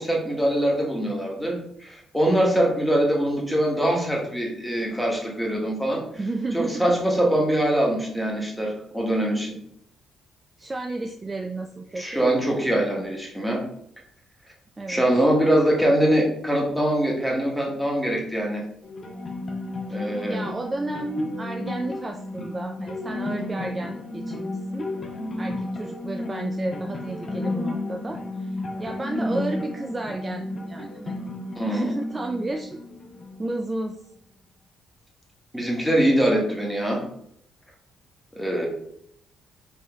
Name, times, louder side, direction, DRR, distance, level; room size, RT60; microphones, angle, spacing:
voice 1, 0.0-6.0 6.5-9.6 11.9-13.6 14.9-18.6 19.9-20.4 31.6-31.9 35.5-37.1 38.4-38.7, right 1 dB, ahead, -1 dB, 1.1 m, -23 dB
voice 2, 6.2-6.9 10.6-12.3 14.8-15.0 20.3-24.9 25.4-28.2 28.5-31.3 31.7-32.8 33.4-34.0, right 2 dB, 25° right, 3 dB, 0.3 m, -32 dB
sound 1, 18.8-33.8, left 2 dB, 40° left, 0.7 m, -33 dB
3.6 x 2.6 x 3.4 m, 0.71 s
cardioid pair, 90°, 0 cm